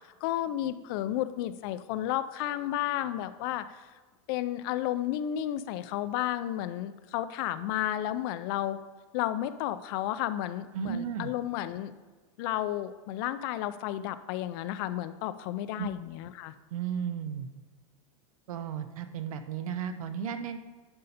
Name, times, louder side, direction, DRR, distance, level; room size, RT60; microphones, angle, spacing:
voice 1, 0.2-3.9 4.3-8.8 9.1-11.9 12.4-16.5, left 12 dB, 40° left, 13 dB, 0.4 m, -32 dB
voice 2, 10.7-11.3 15.8-15.9 16.7-17.5 18.5-20.6, right 7 dB, 85° right, 9 dB, 0.9 m, -34 dB
10.5 x 5.4 x 4.1 m, 1.4 s
supercardioid pair, 165°, 17 cm